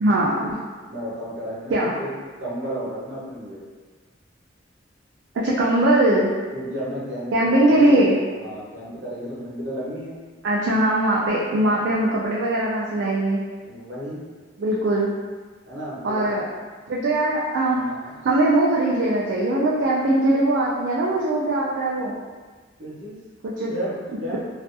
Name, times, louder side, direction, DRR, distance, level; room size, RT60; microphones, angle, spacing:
voice 1, 0.0-0.6 1.7-1.9 5.3-6.3 7.3-8.2 10.4-13.4 14.6-15.1 16.0-16.5 16.9-17.8 18.2-22.1 23.4-23.7, right 1 dB, 70° right, -5 dB, 0.3 m, -20 dB
voice 2, 0.8-2.1 2.4-3.6 6.5-8.1 8.4-10.2 13.6-14.3 15.6-16.3 17.7-18.1 22.8-23.2 23.7-24.4, equal, 85° right, -7 dB, 0.8 m, -33 dB
2.5 x 2.3 x 2.5 m, 1.4 s
head